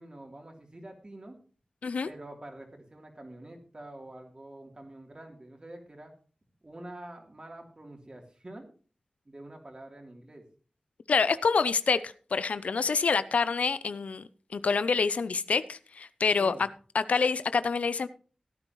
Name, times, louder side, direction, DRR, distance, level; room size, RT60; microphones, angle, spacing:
voice 1, 0.0-1.3 2.0-6.1 6.6-8.7 9.2-10.4 16.4-16.6, right 1 dB, 40° right, 2 dB, 3.2 m, -46 dB
voice 2, 11.1-14.2 14.5-16.7 16.9-18.1, left 5 dB, 90° left, 15 dB, 0.5 m, -27 dB
16.0 x 9.8 x 3.0 m, 0.39 s
cardioid pair, 45°, 2 cm